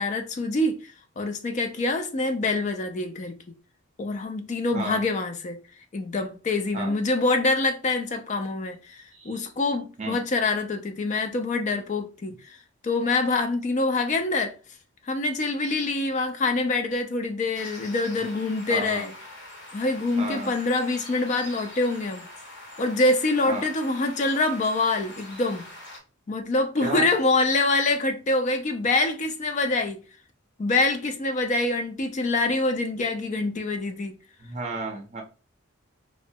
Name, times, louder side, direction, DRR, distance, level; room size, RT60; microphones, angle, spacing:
voice 1, 0.0-3.4 4.0-5.6 5.9-12.6 12.8-14.5 15.0-19.1 19.7-22.2 22.8-25.7 26.3-30.0 30.6-34.2, left 2 dB, 35° left, 0.3 m, -25 dB
voice 2, 4.7-5.0 6.7-7.0 9.1-9.4 10.0-10.2 18.7-19.1 20.2-20.5 23.5-23.7 26.8-27.1 34.4-35.2, right 2 dB, 35° right, 0.5 m, -32 dB
sound 1, 17.5-26.0, left 1 dB, 60° left, 0.8 m, -43 dB
3.0 x 2.1 x 2.6 m
head